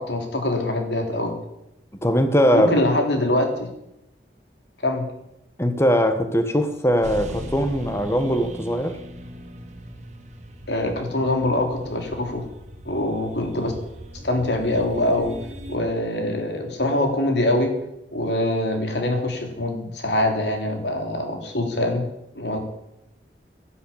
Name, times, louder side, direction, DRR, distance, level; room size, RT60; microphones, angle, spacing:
voice 1, 0.0-1.3 2.5-3.7 4.8-5.0 10.7-12.4 12.8-13.7 14.2-15.4 15.7-17.7 18.1-22.0 22.3-22.6, left 1 dB, 80° left, 3.4 m, -24 dB
voice 2, 2.0-2.7 5.6-9.0, equal, 15° left, 1.4 m, -20 dB
sound 1, 7.0-15.8, equal, 40° right, 1.7 m, -39 dB
11.5 x 11.5 x 8.6 m
head